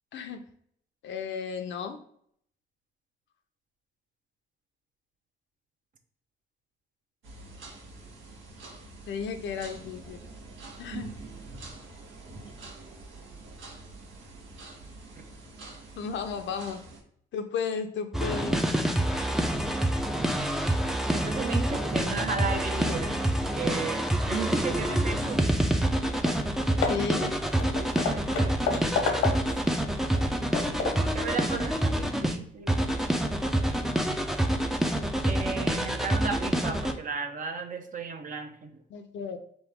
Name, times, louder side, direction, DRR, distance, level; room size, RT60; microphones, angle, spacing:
voice 1, 0.1-0.5 1.0-2.0 9.1-10.2 10.8-11.1 16.0-16.9 17.3-18.6 24.7-25.0 26.8-27.3 38.9-39.4, left 6 dB, 70° left, 7 dB, 0.6 m, -34 dB
sound 1, 7.2-17.0, right 3 dB, 75° right, 1.2 m, -45 dB
sound 2, 18.1-32.4 32.7-36.9, right 1 dB, ahead, 0.5 m, -27 dB
voice 2, 21.1-23.2 23.5-25.5 27.2-27.3 27.8-28.5 31.0-32.8 35.2-38.7, right 5 dB, 40° right, 5 dB, 0.8 m, -35 dB
Hammer / Wood, 25.9-26.0 26.2-26.5 26.8-29.7 30.1-31.2, left 4 dB, 85° left, 1.0 m, -31 dB
4.1 x 3.1 x 3.5 m, 0.66 s
cardioid pair, 90°, 20 cm